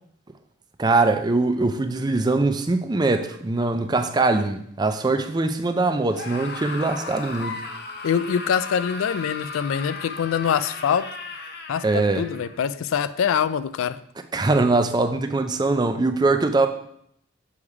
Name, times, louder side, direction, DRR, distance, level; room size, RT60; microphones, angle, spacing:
voice 1, 0.8-7.6 11.8-12.2 14.3-16.7, right 3 dB, 20° right, 7 dB, 0.4 m, -22 dB
Screaming, 6.1-12.6, left 4 dB, 50° left, 0.7 m, -35 dB
voice 2, 8.0-11.1 11.7-14.0, left 7 dB, 85° left, 15 dB, 0.3 m, -24 dB
7.1 x 3.3 x 4.7 m, 0.69 s
head